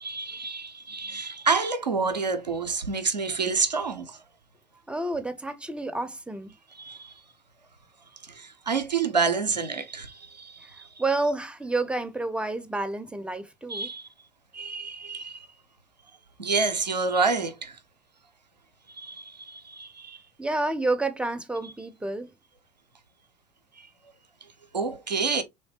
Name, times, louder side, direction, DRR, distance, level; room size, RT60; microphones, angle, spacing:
voice 1, 0.0-4.2 6.8-7.1 8.4-10.9 13.7-14.0 14.5-15.5 16.4-17.8 19.0-20.2 24.7-25.4, right 4 dB, 90° right, 0.5 m, -28 dB
voice 2, 4.9-6.5 11.0-13.9 20.4-22.3, right 2 dB, 5° right, 0.5 m, -29 dB
3.1 x 3.1 x 2.8 m
figure-of-eight pair, 60°, 21 cm